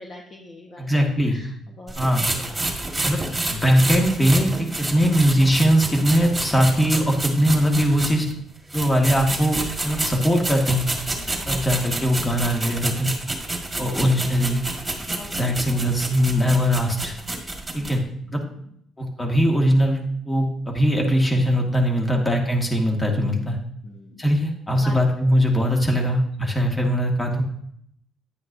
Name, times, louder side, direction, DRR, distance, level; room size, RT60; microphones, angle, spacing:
voice 1, 0.0-0.9 1.2-3.2 4.6-5.0 11.0-11.5 15.0-15.9 17.8-18.8 23.8-24.3 24.7-25.2 26.0-26.1 26.4-26.5, left 2 dB, 40° left, 0 dB, 1.2 m, -44 dB
voice 2, 0.8-1.4 2.0-2.3 3.0-3.2 3.5-8.3 8.7-10.8 11.5-13.1 13.8-14.6 15.3-17.1 17.7-18.0 18.3-18.4 19.0-20.0 20.3-23.6 24.2-27.4, equal, 15° left, 1 dB, 1.8 m, -20 dB
sound 1, 1.9-8.3 8.7-17.9, right 2 dB, 10° right, 1.9 m, -29 dB
10.0 x 9.6 x 2.7 m, 0.70 s
cardioid pair, 105°, 0 cm